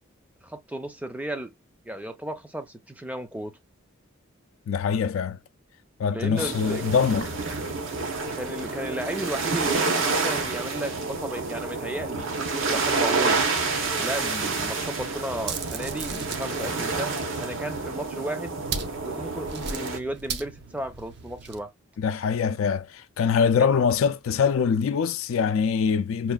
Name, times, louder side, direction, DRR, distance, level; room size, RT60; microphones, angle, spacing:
voice 1, 0.4-1.5 1.9-3.5 6.1-6.8 8.3-13.4 14.0-18.5 19.0-21.7 23.6-23.7, right 1 dB, 5° right, 0.5 m, -34 dB
voice 2, 4.7-5.4 6.0-7.3 22.0-26.3, left 6 dB, 85° left, 0.4 m, -23 dB
sound 1, 6.4-20.0, right 3 dB, 75° right, 1.0 m, -28 dB
diamonds in a bag, 15.4-16.5 18.6-21.6, right 5 dB, 50° right, 0.6 m, -36 dB
5.8 x 2.4 x 2.3 m
head